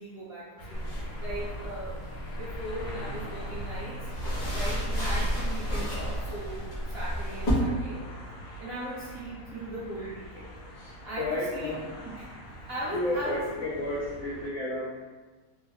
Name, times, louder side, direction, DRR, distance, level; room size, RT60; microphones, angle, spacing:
voice 1, 0.0-4.1 4.5-8.0 8.6-10.5 10.8-11.7 12.0-12.3 12.7-13.4, equal, 40° right, -10 dB, 1.0 m, -38 dB
sound 1, 0.6-14.5, equal, 85° left, 1.3 m, -44 dB
sound 2, 0.7-7.5, equal, 35° left, 0.7 m, -33 dB
voice 2, 10.5-11.9 12.6-15.1, left 1 dB, 65° left, -8 dB, 0.8 m, -33 dB
3.4 x 2.2 x 3.3 m, 1.3 s
omnidirectional pair, 1.9 m